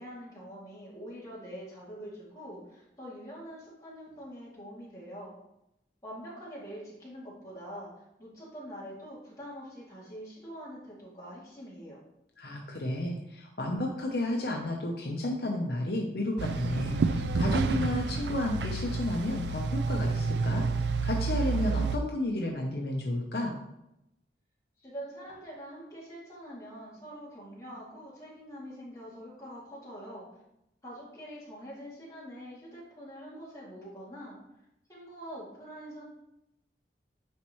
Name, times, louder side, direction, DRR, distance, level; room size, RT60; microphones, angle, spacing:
voice 1, 0.0-5.3 6.0-7.9 8.2-12.0 24.8-30.3 30.8-34.4 34.9-36.0, equal, 20° left, -7 dB, 2.4 m, -44 dB
voice 2, 12.4-23.5, left 1 dB, 65° left, 0 dB, 0.8 m, -32 dB
sound 1, 16.4-22.0, right 4 dB, 75° right, 0.4 m, -29 dB
9.7 x 4.2 x 3.1 m, 0.85 s
head